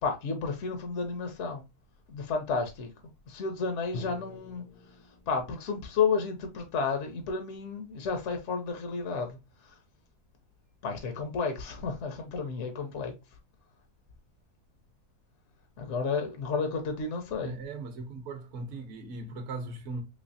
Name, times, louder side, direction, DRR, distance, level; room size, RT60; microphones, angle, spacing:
voice 1, 0.0-1.6 2.1-2.9 3.3-4.6 5.3-9.4 10.8-13.1 15.8-17.6, left 5 dB, 60° left, 0.9 m, -31 dB
Drum, 3.9-7.7, left 2 dB, 85° left, 1.2 m, -48 dB
voice 2, 17.4-20.0, right 3 dB, 55° right, 1.0 m, -38 dB
3.2 x 3.2 x 2.6 m
omnidirectional pair, 1.7 m